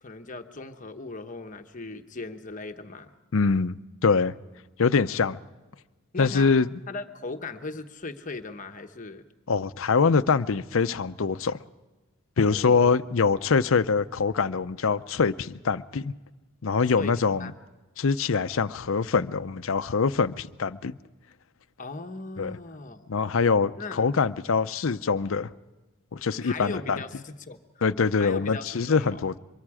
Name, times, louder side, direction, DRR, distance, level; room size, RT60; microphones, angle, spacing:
voice 1, 0.0-3.1 6.1-6.5 6.9-9.2 12.4-13.0 17.0-17.5 21.8-23.1 23.7-24.0 26.4-27.6 28.1-29.2, left 3 dB, 35° left, 1.0 m, -38 dB
voice 2, 3.3-4.3 4.8-5.4 6.2-6.7 9.5-11.6 12.4-16.1 16.6-17.5 18.0-21.0 22.4-22.6 23.1-25.5 26.1-27.0 27.8-29.4, left 5 dB, 65° left, 0.6 m, -24 dB
24.0 x 23.0 x 4.9 m
head